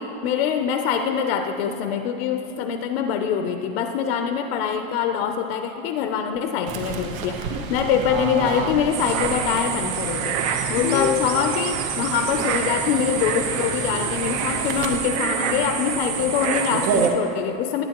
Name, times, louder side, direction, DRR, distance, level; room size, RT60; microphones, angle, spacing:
voice 1, 0.0-10.4 10.7-17.8, left 7 dB, 50° left, 6 dB, 0.5 m, -24 dB
Fowl / Bird, 6.7-15.0, right 5 dB, 90° right, 1.0 m, -32 dB
sound 1, 8.9-17.1, right 7 dB, 60° right, 1.0 m, -26 dB
sound 2, 10.8-11.8, left 10 dB, 90° left, 0.7 m, -26 dB
19.0 x 9.2 x 2.9 m, 2.9 s
supercardioid pair, 180°, 39 cm